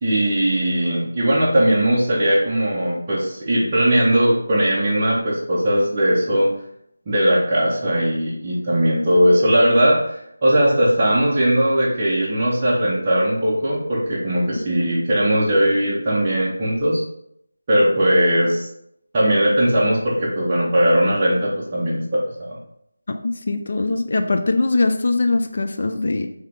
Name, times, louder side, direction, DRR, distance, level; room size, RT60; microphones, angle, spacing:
voice 1, 0.0-6.5 7.1-17.0 17.7-18.7 19.1-22.6, right 1 dB, 20° right, -8 dB, 0.6 m, -19 dB
voice 2, 23.2-26.3, left 3 dB, 45° left, 6 dB, 0.4 m, -21 dB
3.3 x 2.8 x 3.7 m, 0.73 s
figure-of-eight pair, 175°, 0 cm